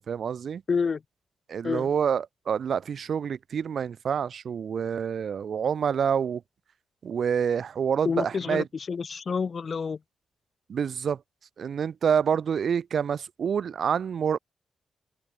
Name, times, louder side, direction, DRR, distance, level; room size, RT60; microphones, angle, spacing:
voice 1, 0.1-0.6 1.5-6.4 7.0-8.7 10.7-11.2 11.6-14.4, right 7 dB, 65° right, 2.1 m, -27 dB
voice 2, 0.7-1.0 1.6-1.9 8.0-10.0, left 5 dB, 45° left, 2.5 m, -28 dB
open air
cardioid pair, 110°, 0 cm